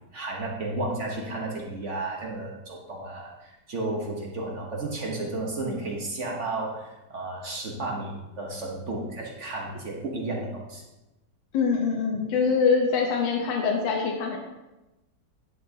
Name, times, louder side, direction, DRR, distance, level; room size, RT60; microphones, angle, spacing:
voice 1, 0.1-10.8, right 2 dB, 45° right, -1 dB, 1.1 m, -33 dB
voice 2, 11.5-14.4, left 5 dB, 80° left, 0 dB, 1.6 m, -24 dB
10.0 x 5.5 x 2.8 m, 1.0 s
omnidirectional pair, 2.0 m